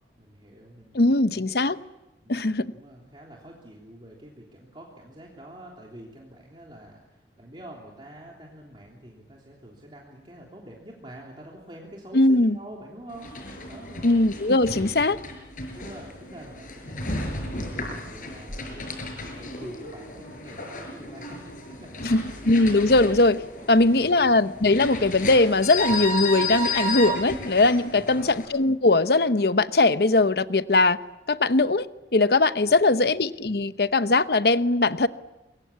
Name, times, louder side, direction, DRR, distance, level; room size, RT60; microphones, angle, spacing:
voice 1, 0.2-1.8 2.2-14.1 14.6-15.1 15.7-22.0 23.6-24.3 27.9-28.3 32.6-33.1, right 1 dB, 30° right, -2 dB, 3.4 m, -46 dB
voice 2, 0.9-1.8 2.3-2.7 12.1-12.6 14.0-15.2 22.0-23.4 23.7-31.0 31.3-31.9 32.1-35.1, left 2 dB, 65° left, 13 dB, 0.9 m, -20 dB
sound 1, 13.1-28.5, left 1 dB, 50° left, 5.6 m, -33 dB
26.5 x 22.0 x 8.5 m, 1.0 s
head